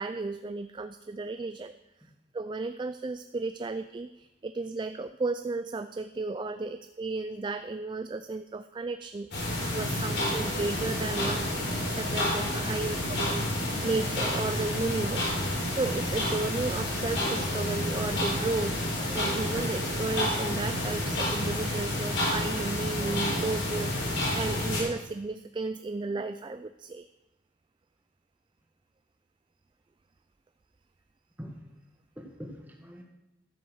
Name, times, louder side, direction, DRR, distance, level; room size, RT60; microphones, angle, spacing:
voice 1, 0.0-1.7 2.3-11.4 11.9-13.0 13.2-13.3 13.8-15.3 15.7-27.1, right 3 dB, 25° right, 11 dB, 0.3 m, -34 dB
sound 1, 9.3-24.8, left 1 dB, 75° left, 4.2 m, -29 dB
voice 2, 16.8-17.6 19.0-19.5 22.8-23.2 26.0-26.1 31.4-31.5 32.2-33.0, equal, 10° right, 1 dB, 1.7 m, -46 dB
12.5 x 6.0 x 6.3 m, 0.93 s
head